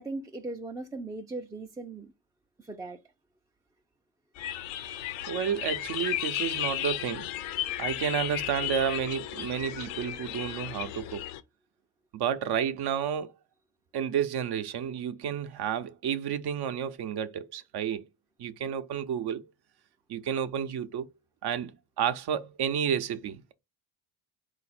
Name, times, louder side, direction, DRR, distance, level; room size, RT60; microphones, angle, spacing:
voice 1, 0.0-2.1 2.6-3.0, right 2 dB, 10° right, 0.4 m, -38 dB
sound 1, 4.4-11.4, left 13 dB, 75° left, 0.6 m, -34 dB
voice 2, 5.3-7.3 7.8-11.2 12.1-13.3 13.9-18.0 18.4-19.5 20.1-21.1 21.4-23.5, right 8 dB, 50° right, 0.6 m, -31 dB
3.9 x 2.6 x 4.2 m
hypercardioid pair, 60°, 49 cm